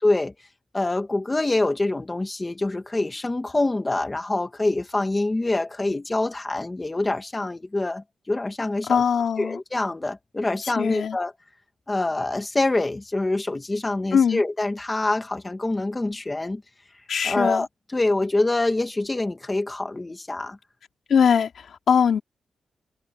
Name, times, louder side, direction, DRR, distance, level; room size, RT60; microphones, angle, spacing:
voice 1, 0.0-0.3 0.7-9.0 9.4-11.3 11.9-16.6 17.2-17.7 17.9-20.6, left 2 dB, 15° left, 2.0 m, -25 dB
voice 2, 8.9-9.6 10.8-11.2 14.1-14.4 17.1-17.6 21.1-22.2, left 7 dB, 60° left, 3.3 m, -21 dB
wide cardioid pair, 175°, 0 cm